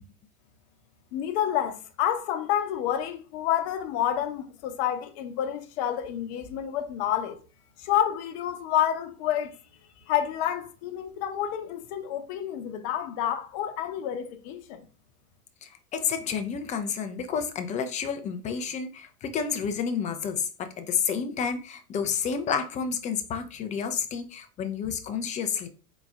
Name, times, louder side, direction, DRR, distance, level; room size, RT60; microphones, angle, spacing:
voice 1, 1.1-7.4 7.8-9.6 10.1-14.8, left 10 dB, 45° left, 0.8 m, -29 dB
voice 2, 15.6-25.7, left 6 dB, 15° left, 0.4 m, -30 dB
4.1 x 3.9 x 2.4 m
hypercardioid pair, 100°, 45 cm